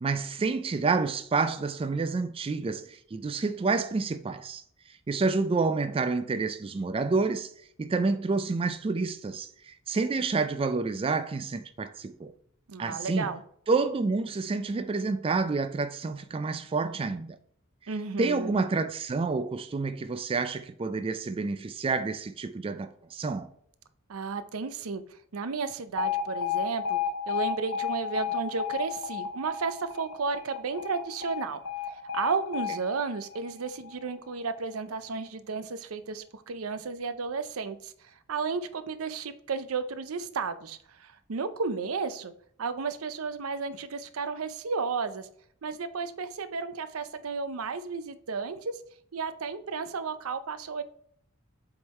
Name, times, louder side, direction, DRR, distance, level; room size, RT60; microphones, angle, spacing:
voice 1, 0.0-4.6 4.9-7.5 7.8-12.3 12.8-13.3 13.7-17.4 18.2-23.5, right 4 dB, 25° right, 0.3 m, -29 dB
voice 2, 12.7-13.4 17.9-18.5 24.1-25.0 25.3-27.0 27.3-31.6 31.9-42.3 42.6-45.3 45.6-48.8 49.1-50.8, right 4 dB, 80° right, 0.6 m, -33 dB
Alarm, 26.0-34.0, left 7 dB, 80° left, 0.9 m, -33 dB
7.7 x 3.7 x 4.3 m
head